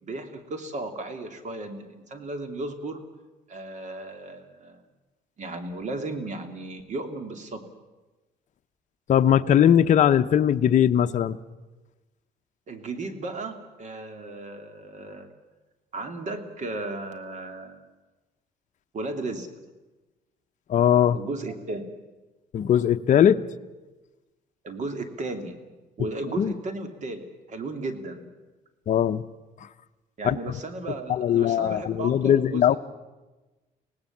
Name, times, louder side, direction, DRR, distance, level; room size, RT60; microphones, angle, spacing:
voice 1, 0.0-3.0 3.5-4.8 5.4-7.6 12.7-15.3 15.9-17.9 18.9-19.5 21.1-21.9 24.6-25.6 26.0-28.3 30.2-32.8, right 2 dB, 45° right, 6 dB, 2.7 m, -35 dB
voice 2, 9.1-11.4 20.7-21.2 22.5-23.4 26.4-26.5 28.9-29.2 30.2-30.6 31.1-32.8, left 9 dB, 45° left, 8 dB, 0.8 m, -20 dB
25.0 x 18.0 x 7.3 m, 1.2 s
cardioid pair, 110°, 17 cm